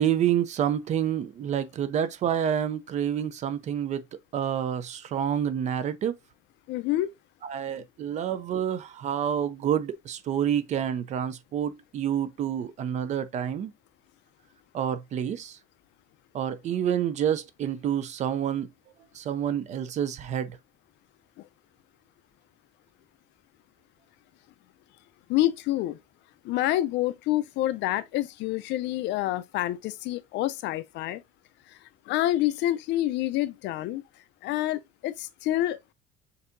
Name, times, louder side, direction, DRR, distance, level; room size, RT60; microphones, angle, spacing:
voice 1, 0.0-4.0 4.3-6.1 7.4-13.7 14.7-15.6 16.3-18.7 19.1-20.6, right 9 dB, 35° right, 0.4 m, -28 dB
voice 2, 6.7-7.1 25.3-26.0 26.4-31.2 31.7-31.8 32.1-34.0 34.4-35.9, left 14 dB, 65° left, 0.4 m, -27 dB
6.5 x 2.7 x 2.5 m
cardioid pair, 160°, 20 cm